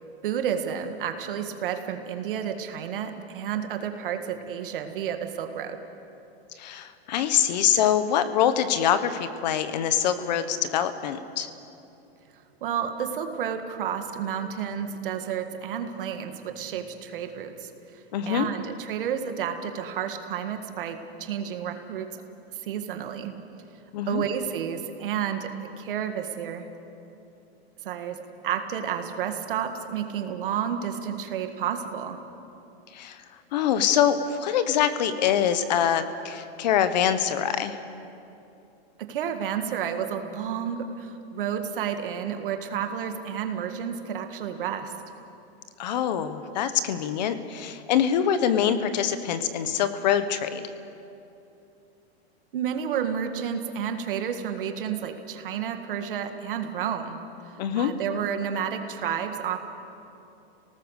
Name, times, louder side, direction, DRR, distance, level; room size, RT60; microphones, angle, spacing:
voice 1, 0.2-5.8 12.6-17.7 18.2-22.1 22.5-23.3 24.1-25.5 25.8-26.7 27.8-28.2 28.4-32.2 39.0-44.9 52.5-57.2 57.5-59.6, right 8 dB, 55° right, 6 dB, 1.9 m, -31 dB
voice 2, 6.6-11.5 18.1-18.5 23.9-24.2 32.9-33.2 33.5-37.8 45.8-50.6 57.6-57.9, left 9 dB, 40° left, 11 dB, 1.2 m, -24 dB
29.5 x 19.0 x 6.6 m, 2.8 s
supercardioid pair, 175°, 32 cm